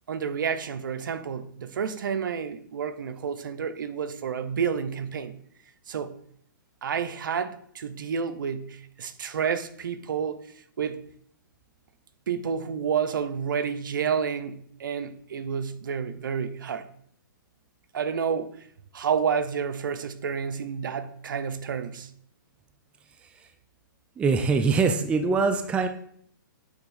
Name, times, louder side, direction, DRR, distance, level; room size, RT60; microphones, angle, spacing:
voice 1, 0.1-5.3 5.9-6.2 6.8-10.4 10.8-11.0 12.3-16.9 17.9-18.6 18.9-22.1, right 7 dB, 70° right, 0.8 m, -30 dB
voice 2, 24.2-25.9, right 4 dB, 10° right, 0.5 m, -23 dB
8.8 x 3.5 x 6.4 m
hypercardioid pair, 150°, 11 cm